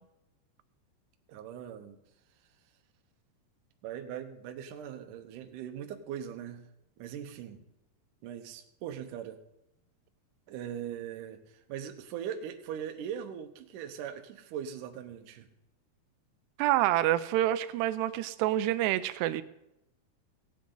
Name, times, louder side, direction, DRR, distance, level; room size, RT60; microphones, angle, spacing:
voice 1, 1.3-2.0 3.8-6.6 7.0-7.6 8.2-9.4 10.5-15.5, right 9 dB, 70° right, 6 dB, 2.1 m, -40 dB
voice 2, 16.6-19.4, right 14 dB, 90° right, 13 dB, 2.7 m, -27 dB
17.0 x 8.6 x 3.9 m, 0.87 s
omnidirectional pair, 4.7 m